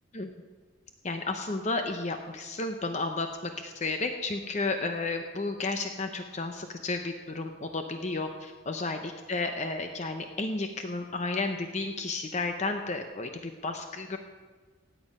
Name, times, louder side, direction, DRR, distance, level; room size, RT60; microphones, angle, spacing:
voice 1, 1.0-14.2, left 3 dB, 35° left, 6 dB, 0.7 m, -32 dB
16.0 x 9.5 x 5.4 m, 1.4 s
head